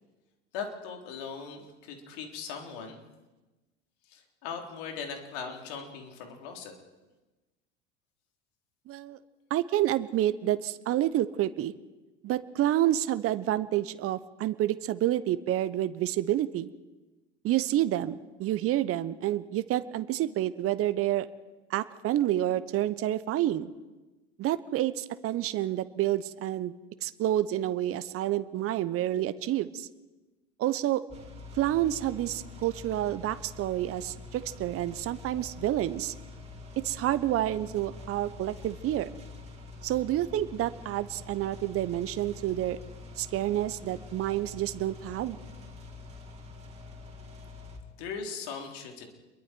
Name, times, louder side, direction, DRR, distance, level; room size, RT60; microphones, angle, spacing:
voice 1, 0.5-3.0 4.1-6.7 48.0-49.1, left 6 dB, 65° left, 2 dB, 4.1 m, -39 dB
voice 2, 8.9-9.2 9.5-11.7 12.2-16.7 17.4-21.3 21.7-23.7 24.4-26.7 27.0-29.9 30.6-31.0 31.5-36.1 36.8-39.1 39.8-42.8 43.2-45.4, right 13 dB, 40° right, 14 dB, 1.1 m, -29 dB
sound 1, 31.1-47.8, left 3 dB, 20° right, 6.0 m, -46 dB
29.0 x 22.5 x 4.7 m, 1.1 s
hypercardioid pair, 75°, 34 cm